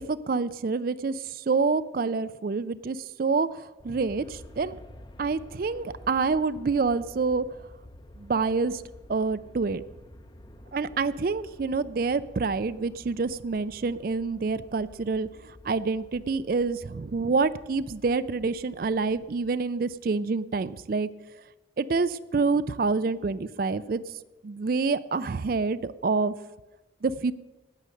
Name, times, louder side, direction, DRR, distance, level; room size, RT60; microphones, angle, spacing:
voice 1, 0.0-4.8 5.2-7.4 8.2-8.8 9.1-9.8 10.7-21.1 21.8-24.0 24.4-26.3 27.0-27.3, right 4 dB, 50° right, 15 dB, 0.4 m, -27 dB
Aircraft, 3.8-20.0, left 1 dB, 25° left, 0.6 m, -50 dB
18.5 x 6.5 x 6.4 m, 1.1 s
head